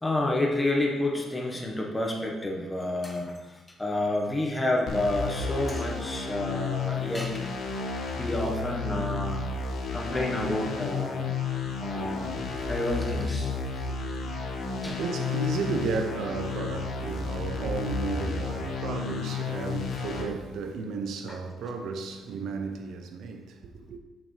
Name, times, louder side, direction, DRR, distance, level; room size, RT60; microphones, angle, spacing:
voice 1, 0.0-7.4 8.2-9.5 9.9-11.3 11.8-13.5 14.8-15.0 21.3-21.4, left 1 dB, 15° left, 1.3 m, -29 dB
sound 1, 4.9-20.2, left 4 dB, 70° left, 1.2 m, -32 dB
voice 2, 12.3-12.7 13.9-24.0, right 4 dB, 80° right, 0.7 m, -34 dB
6.8 x 5.9 x 3.3 m
cardioid pair, 90°, 0 cm